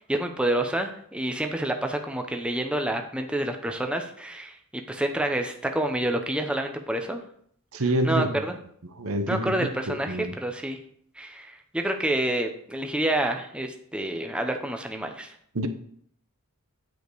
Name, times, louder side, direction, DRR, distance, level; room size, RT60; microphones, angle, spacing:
voice 1, 0.1-4.5 4.9-7.2 7.8-8.6 9.3-10.8 11.2-15.3, right 1 dB, 5° right, 0.8 m, -28 dB
voice 2, 7.7-8.4 9.0-10.3 15.5-15.7, right 1 dB, 70° right, 0.9 m, -27 dB
9.2 x 5.1 x 4.7 m
head